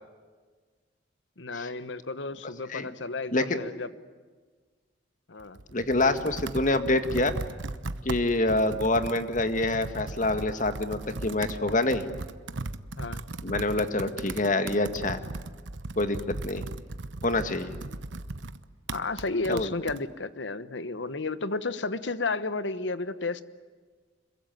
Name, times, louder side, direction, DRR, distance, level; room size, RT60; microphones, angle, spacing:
voice 1, 1.4-3.9 5.3-5.6 13.0-13.2 18.9-23.4, left 3 dB, 80° left, 14 dB, 1.2 m, -32 dB
Computer keyboard, 5.4-20.0, right 2 dB, 85° right, 1.0 m, -38 dB
voice 2, 5.7-7.3 8.0-12.1 13.4-15.2 16.0-16.6 17.2-17.8 19.5-19.7, left 2 dB, 45° left, 9 dB, 1.8 m, -26 dB
26.5 x 23.0 x 9.4 m, 1.5 s
head